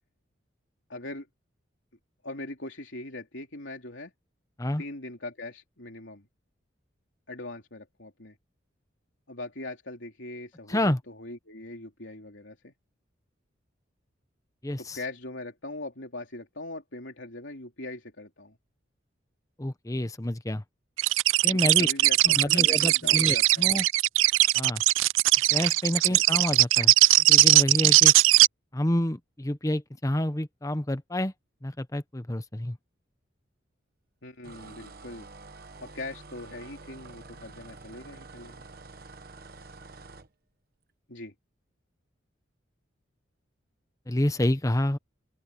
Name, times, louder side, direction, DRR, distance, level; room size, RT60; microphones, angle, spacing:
voice 1, 0.9-1.3 2.2-4.1 4.8-6.3 7.3-8.4 9.3-12.7 14.8-18.6 21.5-23.7 26.1-26.2 34.2-35.3 35.8-38.7 41.1-41.3, left 2 dB, 75° left, 3.2 m, -41 dB
voice 2, 10.7-11.0 14.6-15.0 19.6-20.6 21.4-21.9 22.2-23.8 24.5-24.8 25.5-26.9 27.3-28.1 28.7-31.3 31.6-32.8 44.1-45.0, left 1 dB, 15° left, 0.9 m, -28 dB
sound 1, 21.0-28.5, right 18 dB, 85° right, 0.3 m, -20 dB
sound 2, 34.4-40.3, right 3 dB, 50° right, 1.2 m, -47 dB
open air
head